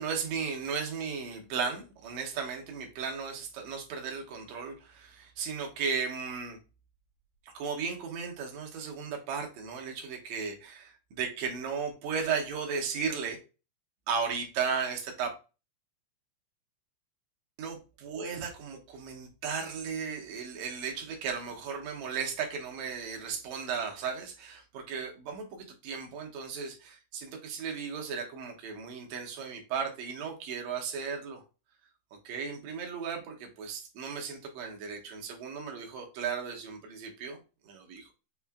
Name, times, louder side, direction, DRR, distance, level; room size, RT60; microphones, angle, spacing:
voice 1, 0.0-6.6 7.5-13.4 14.1-15.3 17.6-31.4 32.3-37.4 37.6-38.1, right 6 dB, 70° right, 2 dB, 1.8 m, -35 dB
5.4 x 2.4 x 2.2 m, 0.31 s
omnidirectional pair, 3.7 m